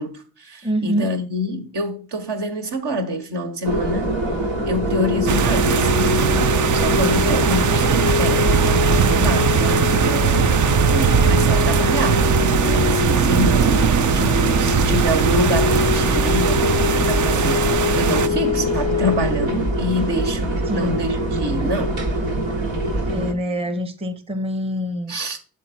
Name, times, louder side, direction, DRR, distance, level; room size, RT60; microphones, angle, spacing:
voice 1, 0.0-4.2 4.6-12.3 12.7-22.0 25.1-25.4, equal, 60° right, 1.4 m, -26 dB
voice 2, 0.6-1.1 6.9-7.5 14.5-14.7 20.7-21.0 23.1-25.2, equal, 10° right, 0.9 m, -26 dB
sound 1, 3.6-23.3, right 1 dB, 75° right, 1.3 m, -25 dB
sound 2, 4.9-19.2, left 8 dB, 35° left, 0.4 m, -26 dB
sound 3, 5.3-18.3, right 7 dB, 40° right, 0.6 m, -19 dB
7.4 x 3.8 x 4.3 m
hypercardioid pair, 40°, 47 cm